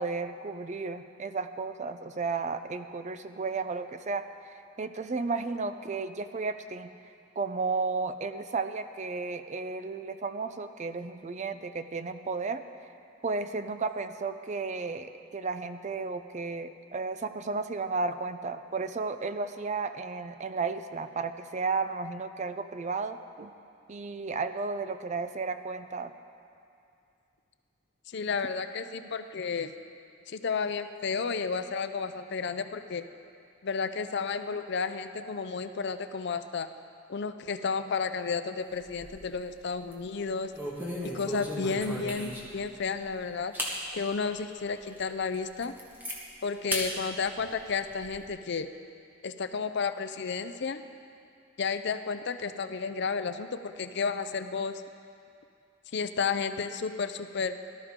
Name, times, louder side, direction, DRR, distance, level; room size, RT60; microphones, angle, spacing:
voice 1, 0.0-4.3 4.8-6.9 7.4-12.6 13.2-23.5 23.9-26.1, right 4 dB, 35° right, 10 dB, 0.5 m, -33 dB
voice 2, 28.1-29.7 30.3-33.0 33.6-36.7 37.1-40.5 41.0-43.5 43.9-45.7 46.4-48.7 49.2-50.8 51.6-54.8 55.9-57.6, left 5 dB, 60° left, 10 dB, 0.5 m, -32 dB
sound 1, 38.7-39.4 39.8-40.0 40.5-42.6 43.1-43.2 43.5-43.8 44.3-44.4 44.9-45.0 45.3-46.2 46.7-46.9 47.3-48.2, equal, 10° right, 1.6 m, -35 dB
18.0 x 12.5 x 3.7 m, 2.5 s
head